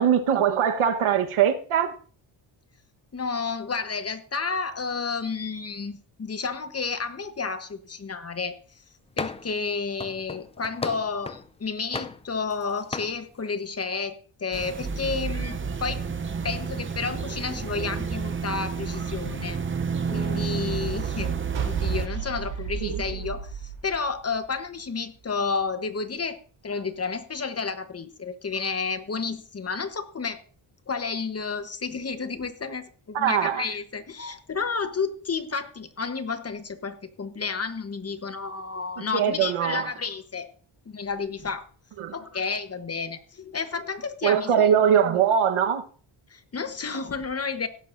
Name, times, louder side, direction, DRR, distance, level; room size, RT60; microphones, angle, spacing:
voice 1, 0.0-1.9 22.8-23.0 33.1-33.6 39.0-39.9 42.0-42.1 44.2-45.8, right 8 dB, 90° right, 1.3 m, -22 dB
voice 2, 3.1-8.6 9.2-16.0 16.4-19.6 20.1-26.4 26.6-30.4 30.9-40.5 40.9-41.7 42.1-44.7 46.3-47.7, left 5 dB, 30° left, 1.1 m, -31 dB
sound 1, 9.2-9.6 10.0-11.5 11.9-12.6 12.9-13.2, left 3 dB, 15° left, 0.4 m, -35 dB
sound 2, 14.5-22.1, right 6 dB, 25° right, 0.7 m, -30 dB
sound 3, 21.5-24.8, right 6 dB, 65° right, 2.7 m, -34 dB
16.5 x 11.5 x 2.6 m
wide cardioid pair, 130°, 48 cm